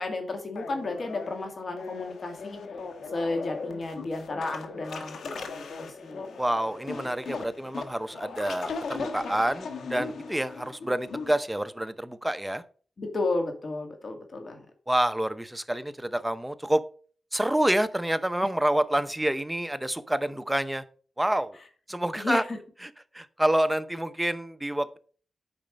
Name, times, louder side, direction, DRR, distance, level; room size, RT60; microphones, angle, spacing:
voice 1, 0.0-2.6 3.1-6.4 13.0-14.7 22.2-22.6, left 2 dB, 50° left, 5 dB, 2.1 m, -33 dB
sound 1, 0.6-11.3, left 4 dB, 90° left, 1.2 m, -38 dB
voice 2, 6.4-12.6 14.9-16.8 17.3-20.8 21.2-21.6 21.9-22.4 23.1-25.0, right 1 dB, 10° right, 12 dB, 0.7 m, -27 dB
8.9 x 5.1 x 5.2 m, 0.42 s
cardioid pair, 85°, 0 cm